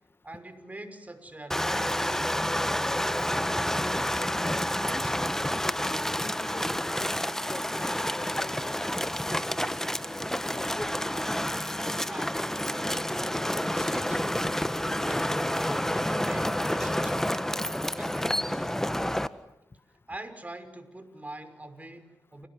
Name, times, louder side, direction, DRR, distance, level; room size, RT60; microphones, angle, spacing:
voice 1, 0.2-2.2 12.1-12.3 12.6-14.4 15.0-17.7 17.9-18.4 20.1-22.5, right 1 dB, 25° right, 8 dB, 5.9 m, -44 dB
sound 1, 1.5-19.3, equal, 5° left, 1.5 m, -29 dB
voice 2, 2.8-3.2 3.9-9.5 10.0-10.7 17.0-17.1, left 3 dB, 35° left, 12 dB, 1.8 m, -44 dB
30.0 x 18.5 x 9.9 m, 0.87 s
supercardioid pair, 45°, 7 cm